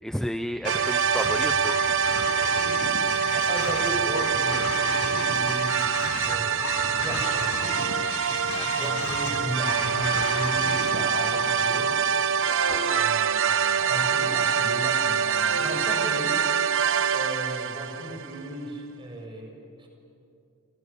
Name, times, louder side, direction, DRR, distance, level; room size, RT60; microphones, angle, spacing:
voice 1, 0.0-1.8 8.5-8.9 12.7-13.1, equal, ahead, 8 dB, 0.6 m, -32 dB
sound 1, 0.6-13.0, left 4 dB, 80° left, 2.8 m, -35 dB
sound 2, 0.7-18.5, right 7 dB, 60° right, 0.9 m, -25 dB
sound 3, 2.9-3.9 4.2-16.5, left 2 dB, 25° left, 6.3 m, -40 dB
voice 2, 3.3-7.6 8.8-11.9 12.9-16.4 17.1-19.9, right 1 dB, 20° right, 1 dB, 6.2 m, -36 dB
29.5 x 29.0 x 6.9 m, 2.8 s
head